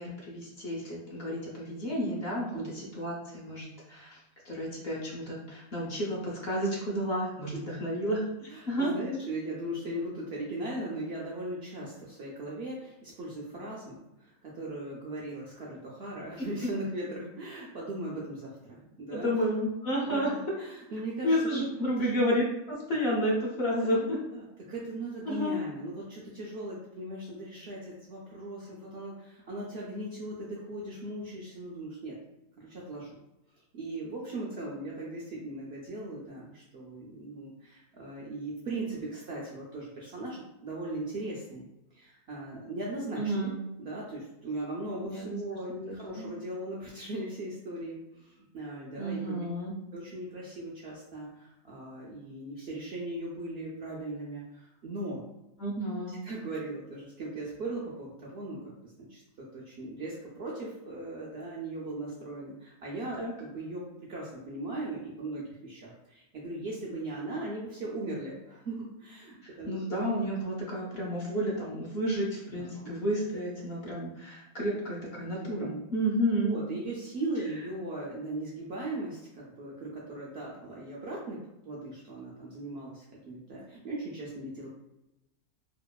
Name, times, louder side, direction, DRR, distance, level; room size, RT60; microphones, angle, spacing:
voice 1, 0.0-4.2 4.5-8.2 8.7-8.9 16.4-16.5 19.1-20.3 21.2-24.2 25.2-25.5 43.2-43.6 45.0-45.4 45.7-45.8 46.2-46.3 49.0-49.7 55.6-56.2 63.2-63.3 69.7-76.6, equal, 55° left, -3 dB, 0.7 m, -31 dB
voice 2, 8.5-19.3 20.0-21.7 22.0-22.1 23.8-32.2 32.6-33.1 33.7-43.5 43.8-49.4 49.9-55.2 56.2-69.8 72.5-73.0 75.4-75.8 76.4-84.7, right 1 dB, 70° right, -4 dB, 0.6 m, -38 dB
2.8 x 2.3 x 2.2 m, 0.91 s
omnidirectional pair, 1.5 m